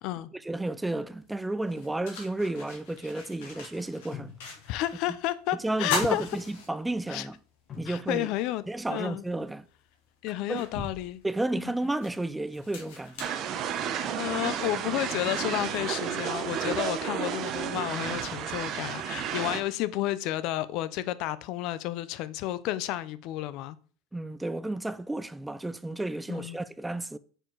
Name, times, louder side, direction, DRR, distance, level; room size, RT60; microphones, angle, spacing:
voice 1, 0.4-4.3 5.6-7.4 7.8-8.3 8.7-9.7 10.5-10.7 11.2-13.3 24.1-27.2, right 2 dB, 5° right, 0.4 m, -32 dB
sound 1, 1.0-1.1 1.6-5.0 5.3-5.4 5.8-7.3 7.7-7.8 9.2-9.3 9.9-14.1, left 3 dB, 85° left, 2.3 m, -39 dB
sound 2, 2.8-2.9 4.1-4.9 5.2-5.5 5.9-6.8 7.7-8.5 8.8-9.1, left 6 dB, 35° left, 1.6 m, -46 dB
voice 2, 4.7-6.2 7.1-7.3 7.9-8.6 8.9-9.2 10.2-11.2 11.6-11.7 14.2-23.8 26.3-26.6, left 15 dB, 60° left, 0.6 m, -31 dB
sound 3, 13.2-19.6, right 8 dB, 45° right, 0.9 m, -32 dB
6.3 x 4.5 x 4.6 m
supercardioid pair, 120°, 0 cm